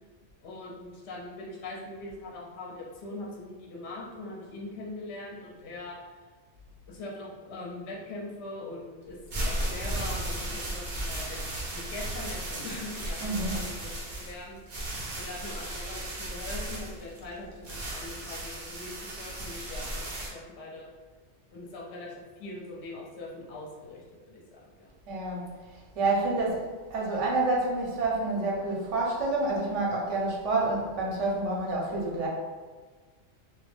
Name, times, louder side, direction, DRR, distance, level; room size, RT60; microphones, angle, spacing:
voice 1, 0.4-6.0 6.9-14.6 15.1-20.9 21.5-24.9, left 2 dB, 65° left, -3 dB, 0.8 m, -42 dB
sound 1, 9.1-20.3, right 1 dB, 55° right, 0.6 m, -35 dB
voice 2, 13.2-13.6 25.1-25.5 26.0-26.6 26.9-32.3, right 2 dB, 75° right, -2 dB, 0.9 m, -28 dB
2.3 x 2.1 x 3.1 m, 1.4 s
omnidirectional pair, 1.3 m